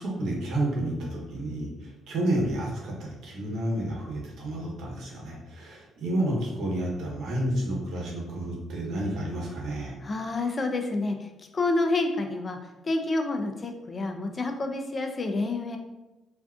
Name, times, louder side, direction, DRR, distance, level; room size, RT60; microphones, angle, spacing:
voice 1, 0.0-10.0, right 1 dB, 75° right, -2 dB, 0.9 m, -30 dB
voice 2, 10.0-11.2 11.5-12.6 12.8-15.8, left 2 dB, 35° left, 4 dB, 0.4 m, -28 dB
2.5 x 2.3 x 3.5 m, 1.0 s
cardioid pair, 90°, 0 cm